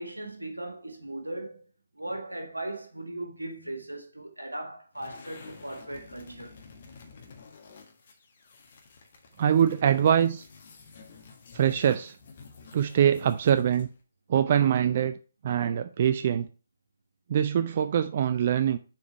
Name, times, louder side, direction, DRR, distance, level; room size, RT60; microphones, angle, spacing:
voice 1, 0.0-1.7 1.9-6.6, right 1 dB, 90° right, 1.7 m, -38 dB
sound 1, 4.9-14.0, left 5 dB, 50° left, 1.6 m, -50 dB
voice 2, 9.4-10.5 11.5-12.2 12.7-13.9 14.3-15.2 15.4-16.5 17.3-18.8, right 9 dB, 45° right, 0.4 m, -23 dB
7.1 x 4.6 x 4.6 m
figure-of-eight pair, 140°, 0 cm